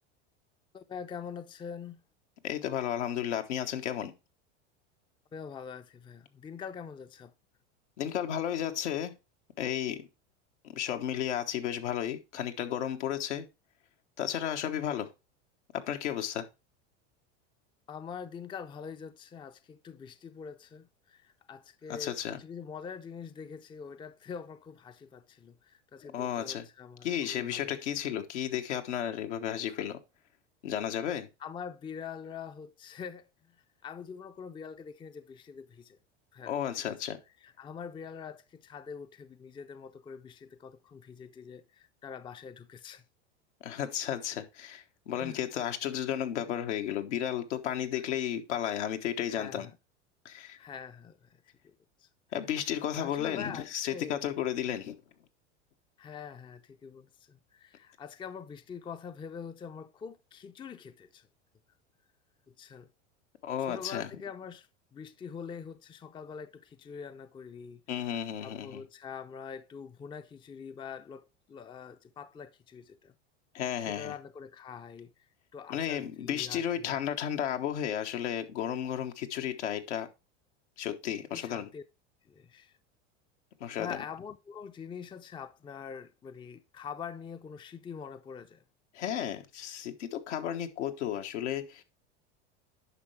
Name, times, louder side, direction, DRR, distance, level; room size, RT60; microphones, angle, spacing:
voice 1, 0.7-2.0 5.3-7.3 17.9-27.8 29.7-29.8 31.4-33.6 33.8-36.0 36.3-37.0 37.4-43.0 45.2-45.7 48.0-48.1 49.3-49.8 50.3-51.7 52.0-52.1 52.7-54.2 56.0-61.3 62.5-62.9 63.6-67.8 68.4-73.1 73.8-76.9 81.3-81.8 82.3-82.7 83.8-88.6, left 6 dB, 15° left, 0.4 m, -44 dB
voice 2, 2.4-4.1 8.0-9.1 9.6-10.1 10.6-13.5 14.2-15.1 15.7-16.4 21.9-22.4 26.1-26.7 27.0-30.0 30.6-31.3 36.5-37.2 43.6-49.7 50.2-50.6 52.3-55.0 63.4-64.1 67.9-68.8 73.5-74.1 75.7-80.1 80.8-81.7 83.6-84.0 88.9-91.8, left 10 dB, 80° left, 1.3 m, -33 dB
9.8 x 5.7 x 3.2 m
hypercardioid pair, 100°, 35 cm